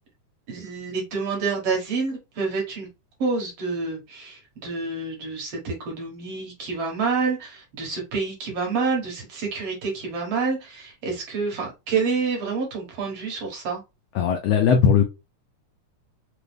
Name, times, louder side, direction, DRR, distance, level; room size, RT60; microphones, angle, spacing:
voice 1, 0.5-2.9 3.2-13.8, right 4 dB, 60° right, 2.1 m, -28 dB
voice 2, 14.1-15.0, left 7 dB, 85° left, 1.4 m, -18 dB
5.0 x 2.2 x 3.3 m
omnidirectional pair, 3.5 m